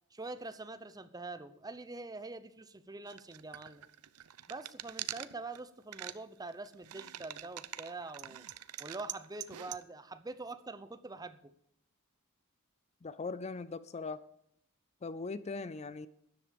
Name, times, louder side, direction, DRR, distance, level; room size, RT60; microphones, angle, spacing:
voice 1, 0.1-3.8 4.5-8.4 8.8-11.5, right 3 dB, 15° right, 12 dB, 0.8 m, -45 dB
sound 1, 3.1-5.6 5.9-6.1 6.5-9.8, right 12 dB, 85° right, 0.7 m, -44 dB
voice 2, 13.0-14.2 15.0-16.1, left 4 dB, 30° left, 16 dB, 0.4 m, -40 dB
13.0 x 10.5 x 5.2 m, 0.74 s
head